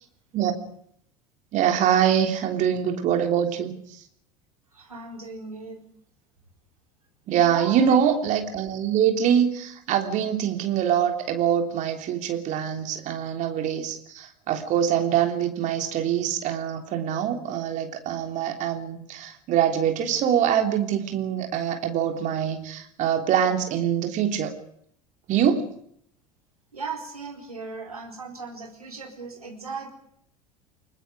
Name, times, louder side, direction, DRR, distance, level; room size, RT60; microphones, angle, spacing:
voice 1, 1.5-3.7 7.3-24.5 25.3-25.7, right 9 dB, 40° right, 4 dB, 3.5 m, -24 dB
voice 2, 4.7-5.8 7.3-8.0 26.7-29.9, right 4 dB, 80° right, 1 dB, 4.1 m, -37 dB
30.0 x 20.0 x 5.1 m, 0.69 s
figure-of-eight pair, 70°, 19 cm